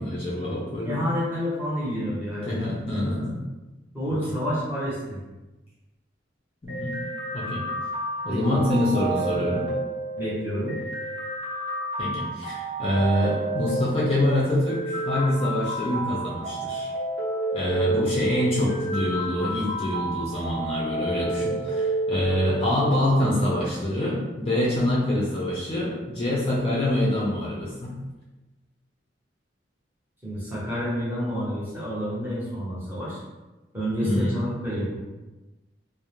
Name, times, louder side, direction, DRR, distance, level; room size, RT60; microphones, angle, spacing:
voice 1, 0.0-1.1 2.5-3.4 6.6-6.9 7.3-7.6 8.2-9.7 12.0-16.9 17.5-28.0 34.0-34.4, left 1 dB, 30° left, -6 dB, 0.4 m, -25 dB
voice 2, 0.8-3.1 3.9-5.2 8.3-8.6 10.2-10.8 30.2-33.2 33.7-35.0, equal, 10° right, -8 dB, 0.7 m, -29 dB
sound 1, 6.7-22.7, right 2 dB, 70° right, 0.8 m, -30 dB
2.4 x 2.0 x 2.9 m, 1.1 s
head